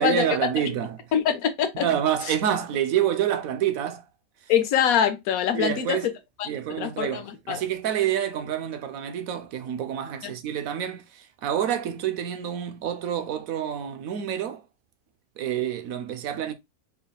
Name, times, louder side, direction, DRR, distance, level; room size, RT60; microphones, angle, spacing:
voice 1, 0.0-1.0 1.7-4.0 5.5-6.1 6.4-14.6 15.4-16.5, right 10 dB, 70° right, 1.0 m, -27 dB
voice 2, 1.1-1.9 4.5-6.1 6.4-6.5 6.8-7.6 10.2-10.3, left 9 dB, 75° left, 1.1 m, -24 dB
4.7 x 3.3 x 2.3 m
omnidirectional pair, 1.6 m